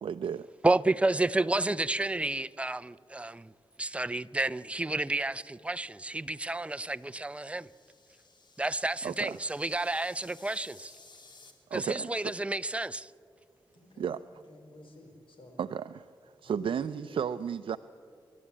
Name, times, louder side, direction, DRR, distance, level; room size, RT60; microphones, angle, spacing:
voice 1, 0.0-0.5 9.0-9.4 11.7-12.3 14.0-14.2 15.6-17.8, right 8 dB, 80° right, 0.4 m, -34 dB
voice 2, 0.6-3.5 3.8-7.7 8.6-11.0 11.7-13.1, right 2 dB, 15° right, 0.5 m, -30 dB
sound 1, 6.5-11.5, left 3 dB, 60° left, 2.7 m, -57 dB
voice 3, 13.7-14.1 14.5-15.6 16.4-17.2, left 1 dB, 80° left, 4.4 m, -50 dB
28.5 x 12.5 x 8.4 m
wide cardioid pair, 80°, 9 cm